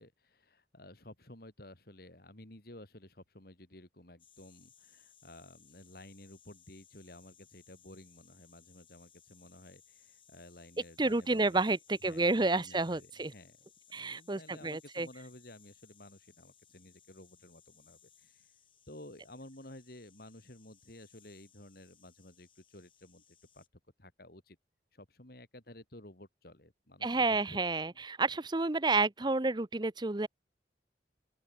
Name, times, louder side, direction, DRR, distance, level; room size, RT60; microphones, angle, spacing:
voice 1, 0.0-11.7 12.0-18.5 18.9-23.6 24.0-24.6 24.9-28.0, left 1 dB, 55° left, 3.3 m, -54 dB
sound 1, 4.2-23.7, left 8 dB, 30° left, 5.4 m, -64 dB
voice 2, 11.0-13.3 13.9-15.1 27.0-30.3, right 3 dB, 25° right, 0.8 m, -30 dB
open air
head